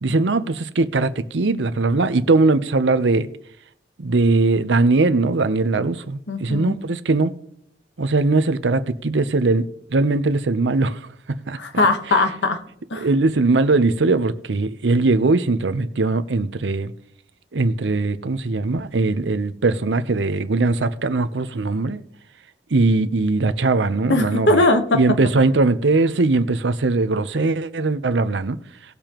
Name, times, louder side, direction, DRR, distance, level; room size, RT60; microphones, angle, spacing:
voice 1, 0.0-3.3 4.0-7.3 8.0-9.6 9.9-11.0 11.3-11.6 12.9-16.9 17.5-22.0 22.7-24.6 24.9-28.6, right 3 dB, 85° right, 0.7 m, -20 dB
voice 2, 6.3-6.7 11.6-12.6 12.9-13.1 24.1-25.0, left 2 dB, 80° left, 1.2 m, -19 dB
18.5 x 6.9 x 3.0 m
head